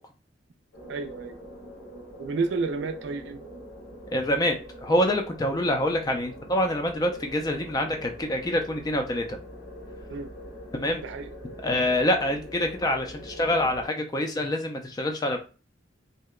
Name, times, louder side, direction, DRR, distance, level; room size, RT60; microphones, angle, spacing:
sound 1, 0.7-13.9, equal, 90° left, 1.1 m, -43 dB
voice 1, 0.9-1.4 2.2-3.4 5.6-5.7 10.1-10.3 11.0-11.3, right 4 dB, 65° right, 0.3 m, -31 dB
voice 2, 4.1-4.6 4.8-9.4 10.7-11.0 11.6-15.4, left 1 dB, 20° left, 0.3 m, -26 dB
2.7 x 2.1 x 2.3 m
head